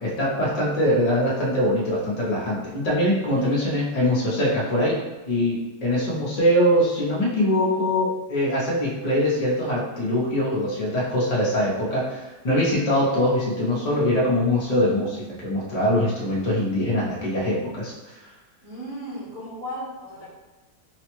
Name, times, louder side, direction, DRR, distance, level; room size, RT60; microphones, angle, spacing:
voice 1, 0.0-5.0 5.3-17.9, left 1 dB, 60° left, -5 dB, 0.4 m, -23 dB
voice 2, 3.2-3.6 5.9-6.0 18.6-20.3, equal, 75° right, -10 dB, 2.1 m, -36 dB
3.9 x 2.1 x 2.9 m, 1.1 s
omnidirectional pair, 1.7 m